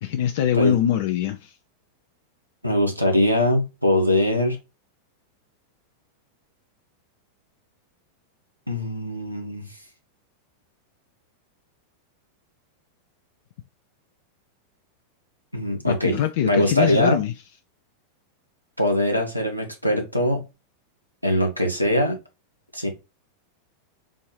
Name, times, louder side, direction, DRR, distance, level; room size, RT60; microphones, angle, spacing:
voice 1, 0.0-1.6 15.9-17.3, left 10 dB, 55° left, 0.3 m, -23 dB
voice 2, 2.6-4.6 8.7-9.7 15.5-17.2 18.8-20.5 21.2-22.2 22.7-22.9, left 1 dB, 90° left, 1.0 m, -22 dB
3.8 x 2.7 x 3.0 m
figure-of-eight pair, 90°, 0 cm